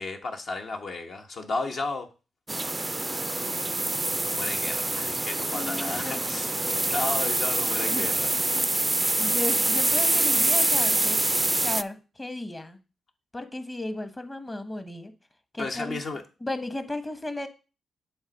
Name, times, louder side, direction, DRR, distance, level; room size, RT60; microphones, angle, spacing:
voice 1, 0.0-2.1 4.2-8.3 15.6-16.2, left 3 dB, 60° left, 1.1 m, -33 dB
sound 1, 2.5-11.8, right 2 dB, 20° right, 0.3 m, -25 dB
voice 2, 5.5-6.2 7.8-8.0 9.2-11.2 11.6-12.8 13.3-15.1 15.5-16.0 16.4-17.5, left 2 dB, 20° left, 1.1 m, -34 dB
7.2 x 3.3 x 5.2 m
supercardioid pair, 55°, 0 cm